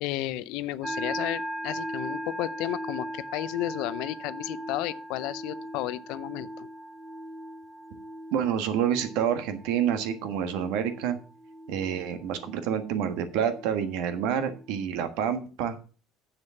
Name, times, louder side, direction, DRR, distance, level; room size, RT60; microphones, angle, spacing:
voice 1, 0.0-6.7, left 16 dB, 65° left, 0.5 m, -33 dB
sound 1, 0.8-14.7, equal, 5° right, 0.6 m, -39 dB
voice 2, 8.3-11.2 11.7-15.8, right 8 dB, 70° right, 1.5 m, -28 dB
7.4 x 6.4 x 7.1 m
cardioid pair, 175°, 0 cm